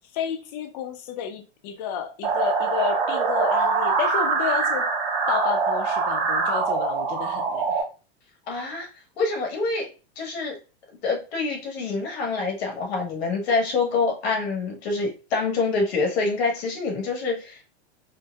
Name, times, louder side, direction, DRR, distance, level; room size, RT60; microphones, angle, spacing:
voice 1, 0.1-4.9 5.3-7.7, left 8 dB, 40° left, 0.6 m, -31 dB
sound 1, 2.2-7.8, right 4 dB, 35° right, 1.0 m, -24 dB
voice 2, 8.5-8.9 9.2-9.8 10.2-10.6 11.0-17.7, left 3 dB, 75° left, 1.5 m, -26 dB
4.5 x 2.1 x 2.3 m
supercardioid pair, 160°, 31 cm